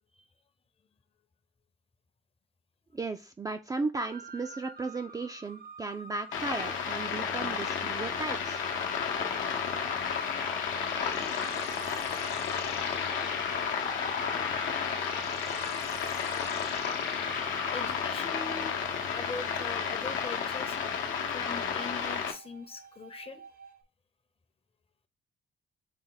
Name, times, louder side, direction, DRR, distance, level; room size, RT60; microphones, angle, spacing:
voice 1, 2.9-8.6, right 3 dB, 20° right, 0.3 m, -35 dB
sound 1, 4.1-23.8, right 4 dB, 45° right, 0.6 m, -49 dB
sound 2, 6.3-22.3, left 6 dB, 80° left, 0.8 m, -32 dB
voice 2, 9.2-9.6 10.3-10.4 11.1-11.5 13.1-13.3 13.9-15.1 15.5-15.6 17.1-18.8 19.1-23.4, left 4 dB, 30° left, 0.6 m, -44 dB
sound 3, 9.8-17.9, left 5 dB, 55° left, 1.0 m, -40 dB
4.9 x 2.1 x 3.9 m
cardioid pair, 90°, 20 cm